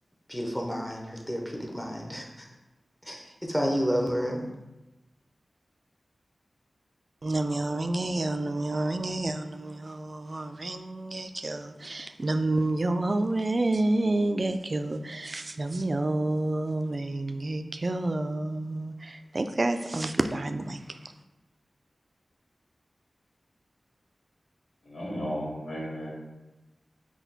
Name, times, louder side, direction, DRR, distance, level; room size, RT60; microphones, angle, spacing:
voice 1, 0.3-2.5 3.0-4.4, equal, 10° left, 0 dB, 0.8 m, -30 dB
voice 2, 7.2-21.1, right 2 dB, 45° right, 8 dB, 0.3 m, -29 dB
voice 3, 24.8-26.1, equal, 85° left, -5 dB, 1.1 m, -34 dB
5.9 x 2.2 x 4.0 m, 1.0 s
wide cardioid pair, 85°, 0 cm